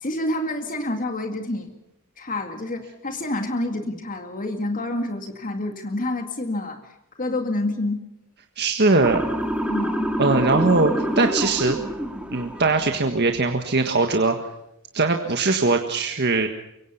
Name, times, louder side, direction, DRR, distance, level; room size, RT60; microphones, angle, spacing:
voice 1, 0.0-1.7 2.2-8.0 9.7-10.2, left 1 dB, 40° left, 5 dB, 2.2 m, -28 dB
voice 2, 8.6-9.2 10.2-11.8 12.3-14.4 14.9-16.5, right 3 dB, 50° right, 5 dB, 1.6 m, -20 dB
Motor vehicle (road) / Siren, 9.0-13.2, equal, 5° right, 2.4 m, -27 dB
25.0 x 23.5 x 5.8 m, 0.86 s
head